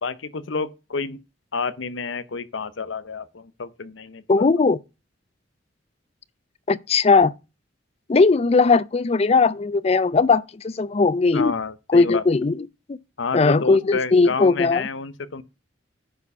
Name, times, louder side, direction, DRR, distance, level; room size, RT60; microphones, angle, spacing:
voice 1, 0.0-1.2 1.5-4.5 11.3-12.2 13.2-15.4, left 4 dB, 80° left, 0.8 m, -29 dB
voice 2, 4.3-4.8 6.7-7.3 8.1-11.5 11.9-13.0 13.3-14.8, left 4 dB, 30° left, 0.4 m, -18 dB
10.0 x 4.8 x 5.4 m
head